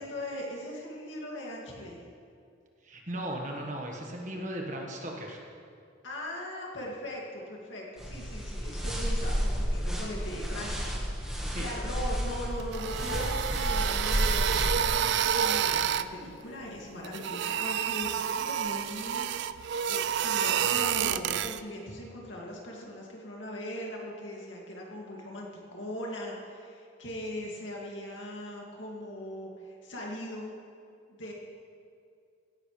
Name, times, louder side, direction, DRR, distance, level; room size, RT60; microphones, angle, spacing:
voice 1, 0.0-2.0 6.0-30.5 31.1-31.3, left 1 dB, 65° left, -2 dB, 2.3 m, -40 dB
voice 2, 2.8-5.4 11.5-11.6, right 1 dB, 40° right, 0 dB, 1.4 m, -37 dB
sound 1, 8.0-15.0, equal, 5° right, 1.4 m, -31 dB
sound 2, 12.6-16.1 17.0-21.6, right 9 dB, 60° right, 0.3 m, -29 dB
17.0 x 11.0 x 3.3 m, 2.4 s
head